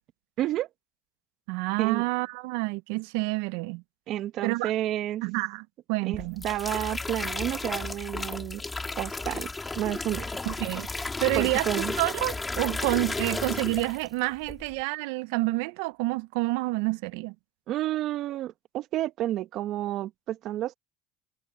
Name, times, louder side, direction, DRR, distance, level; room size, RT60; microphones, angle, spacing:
voice 1, 0.4-0.7 1.8-2.0 4.1-5.2 6.0-8.6 9.0-10.3 11.3-12.0 17.7-20.7, right 13 dB, 60° right, 1.3 m, -30 dB
voice 2, 1.5-3.8 4.4-4.7 5.2-6.4 10.5-10.9 11.2-11.7 12.0-17.3, right 23 dB, 80° right, 0.8 m, -28 dB
sound 1, 6.1-14.1 14.4-14.8, left 3 dB, 20° left, 4.2 m, -33 dB
hypercardioid pair, 75°, 0 cm